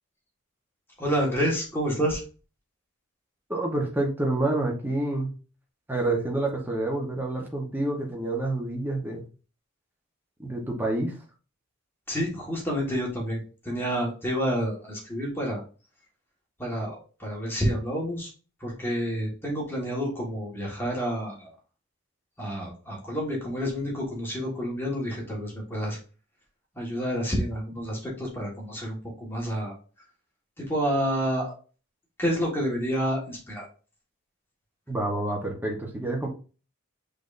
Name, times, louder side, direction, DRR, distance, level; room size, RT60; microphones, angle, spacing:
voice 1, 1.0-2.2 12.1-15.6 16.6-18.3 18.6-21.5 22.4-26.0 26.7-29.7 30.6-31.5 32.2-33.6, equal, 10° left, -3 dB, 1.5 m, -29 dB
voice 2, 3.5-5.3 5.9-9.2 10.4-11.1 34.9-36.3, right 2 dB, 10° right, -1 dB, 0.9 m, -28 dB
6.1 x 3.3 x 2.5 m, 0.36 s
head